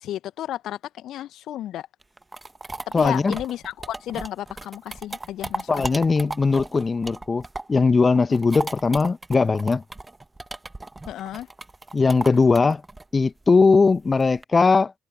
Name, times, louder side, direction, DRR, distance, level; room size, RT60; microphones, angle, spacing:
voice 1, 0.0-1.9 2.9-5.8 8.3-8.4 11.1-11.5, left 12 dB, 55° left, 1.6 m, -32 dB
sound 1, 2.0-7.8 8.1-14.4, right 2 dB, 15° right, 1.6 m, -36 dB
voice 2, 2.9-3.4 5.7-7.4 7.7-9.8 11.9-12.8 13.1-15.0, left 4 dB, 30° left, 1.6 m, -19 dB
figure-of-eight pair, 45°, 0 cm